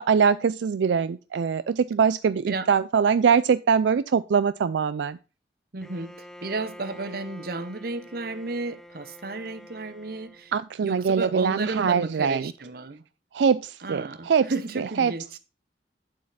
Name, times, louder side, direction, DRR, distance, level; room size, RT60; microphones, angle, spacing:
voice 1, 0.0-5.2 10.5-12.5 13.3-15.1, right 6 dB, 85° right, 0.4 m, -23 dB
voice 2, 5.7-10.5 10.8-13.0 13.8-15.4, right 3 dB, 55° right, 0.9 m, -33 dB
Bowed string instrument, 5.8-10.6, equal, 5° left, 0.7 m, -46 dB
8.7 x 7.6 x 4.1 m
head